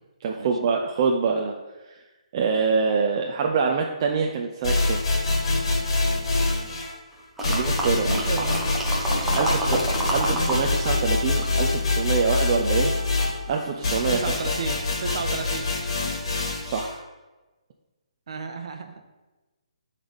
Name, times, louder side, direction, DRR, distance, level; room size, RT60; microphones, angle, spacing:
voice 1, 0.2-1.5 1.9-2.0 2.3-5.0 7.4-8.1 9.3-9.8 10.1-12.9 13.5-14.2 16.6-17.0, right 5 dB, 30° right, 1 dB, 0.6 m, -25 dB
sound 1, 4.6-6.9 7.4-16.9, left 3 dB, 50° left, 2.3 m, -25 dB
sound 2, 7.4-10.6 10.9-12.3 12.9-13.0, right 1 dB, 5° right, 0.9 m, -29 dB
voice 2, 7.9-8.5 9.3-9.8 14.1-15.7 18.3-19.1, right 5 dB, 50° right, 6 dB, 1.1 m, -33 dB
11.5 x 4.1 x 5.3 m, 1.1 s
hypercardioid pair, 165°, 4 cm